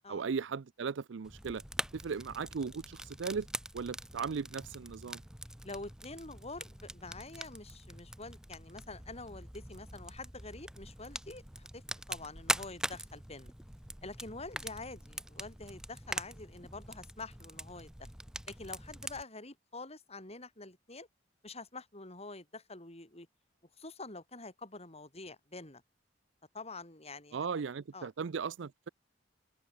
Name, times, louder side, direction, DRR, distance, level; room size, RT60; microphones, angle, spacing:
voice 1, 0.1-1.6 1.9-3.5 3.7-5.2 27.3-28.9, right 5 dB, 70° right, 0.5 m, -37 dB
Fire, 1.2-19.2, right 1 dB, 5° right, 0.6 m, -43 dB
voice 2, 5.6-13.5 14.0-18.1 18.5-21.1 21.4-23.3 23.8-25.8 26.5-27.5 27.9-28.1, left 3 dB, 35° left, 7.5 m, -47 dB
open air
head